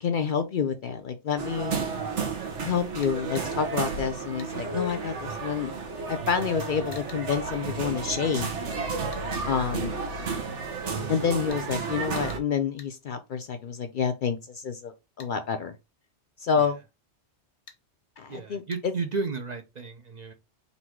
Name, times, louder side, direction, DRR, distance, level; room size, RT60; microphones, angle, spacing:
voice 1, 0.0-1.8 2.6-5.7 6.1-8.5 9.5-10.0 11.1-15.7 16.4-16.8 18.2-18.9, left 6 dB, 55° left, 0.6 m, -28 dB
sound 1, 1.4-12.4, right 4 dB, 90° right, 1.3 m, -32 dB
sound 2, 3.0-3.5 4.4-4.5 6.9-7.2 9.1-9.3 11.5-11.6 12.2-12.4 12.8-12.9 15.2-15.3 17.7-17.8 18.7-18.8, left 5 dB, 75° left, 1.2 m, -49 dB
voice 2, 18.3-20.3, right 4 dB, 45° right, 0.6 m, -33 dB
4.1 x 2.6 x 4.4 m
omnidirectional pair, 1.2 m